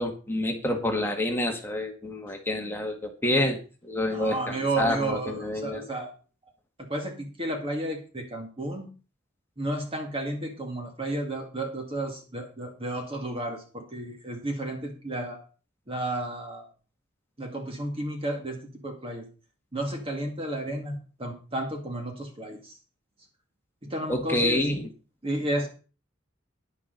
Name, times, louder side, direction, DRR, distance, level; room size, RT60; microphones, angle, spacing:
voice 1, 0.0-3.6 3.8-5.9 24.1-24.9, left 1 dB, 10° left, 2 dB, 1.7 m, -28 dB
voice 2, 4.0-6.1 6.8-8.9 9.6-15.4 15.9-16.7 17.4-19.2 19.7-22.8 23.8-24.7 25.2-25.7, right 1 dB, 30° right, 2 dB, 2.1 m, -32 dB
10.5 x 10.5 x 4.0 m, 0.35 s
head